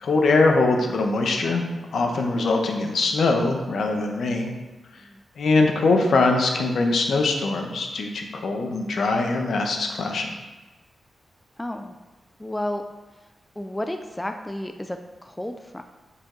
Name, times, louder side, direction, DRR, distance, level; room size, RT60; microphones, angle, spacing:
voice 1, 0.0-1.6 1.9-4.5 5.4-10.3, left 3 dB, 75° left, 3 dB, 0.9 m, -22 dB
voice 2, 11.6-12.0 12.4-12.8 13.6-15.8, left 1 dB, 10° left, 6 dB, 0.4 m, -32 dB
7.0 x 5.1 x 3.9 m, 1.1 s
wide cardioid pair, 105°, 0 cm